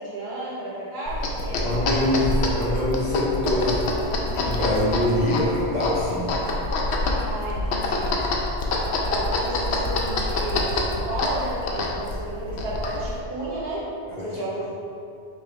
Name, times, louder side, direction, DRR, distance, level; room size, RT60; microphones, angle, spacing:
voice 1, 0.0-1.7 7.3-8.2 9.0-13.9 14.2-14.7, right 1 dB, 65° right, -7 dB, 1.2 m, -32 dB
sound 1, 1.1-13.2, left 2 dB, 90° left, 0.9 m, -26 dB
voice 2, 1.6-3.7 4.3-6.3 14.1-14.4, left 1 dB, 45° left, -7 dB, 1.0 m, -24 dB
4.1 x 3.8 x 3.0 m, 2.6 s
omnidirectional pair, 1.1 m